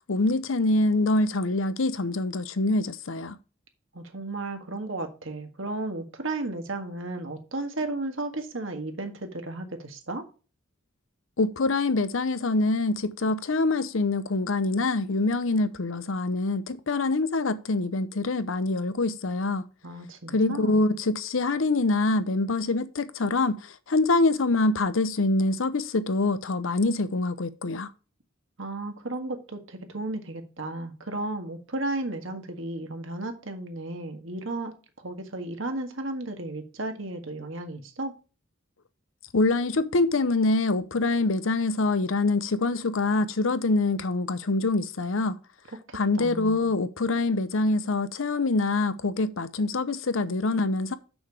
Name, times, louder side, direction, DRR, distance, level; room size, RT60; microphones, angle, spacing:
voice 1, 0.1-3.4 11.4-19.6 20.3-23.6 23.9-27.9 39.3-45.4 45.9-50.9, left 2 dB, 70° left, 0.7 m, -25 dB
voice 2, 3.9-10.2 19.8-20.8 28.6-34.7 35.0-38.1 45.9-46.8, right 2 dB, 65° right, 1.7 m, -34 dB
6.8 x 6.2 x 4.6 m
head